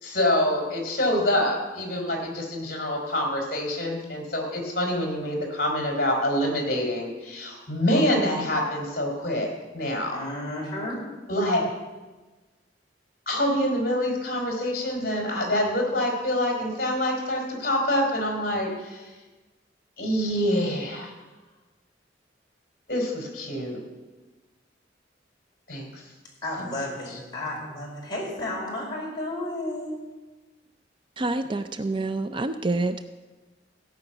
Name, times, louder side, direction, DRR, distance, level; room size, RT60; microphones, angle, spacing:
voice 1, 0.0-10.2 11.3-11.7 13.3-19.1 20.0-21.1 22.9-23.8 25.7-26.1 26.6-26.7, left 1 dB, 55° left, 0 dB, 4.0 m, -26 dB
voice 2, 10.1-11.0 26.4-30.0, left 1 dB, 25° left, -4 dB, 4.9 m, -32 dB
voice 3, 31.2-33.0, right 2 dB, 25° right, 9 dB, 0.5 m, -27 dB
17.0 x 5.8 x 8.9 m, 1.2 s
head